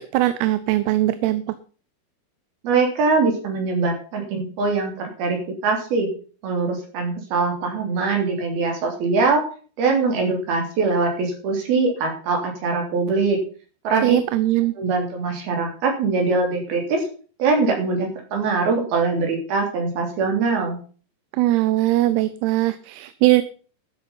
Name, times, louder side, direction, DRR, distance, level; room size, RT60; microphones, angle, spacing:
voice 1, 0.0-1.4 14.0-14.7 21.3-23.4, right 16 dB, 85° right, 14 dB, 2.8 m, -20 dB
voice 2, 2.6-6.1 6.4-9.4 9.8-13.4 13.9-14.2 14.8-17.0 17.4-20.8, right 4 dB, 70° right, 2 dB, 5.3 m, -22 dB
13.0 x 7.8 x 5.5 m, 0.40 s
omnidirectional pair, 4.6 m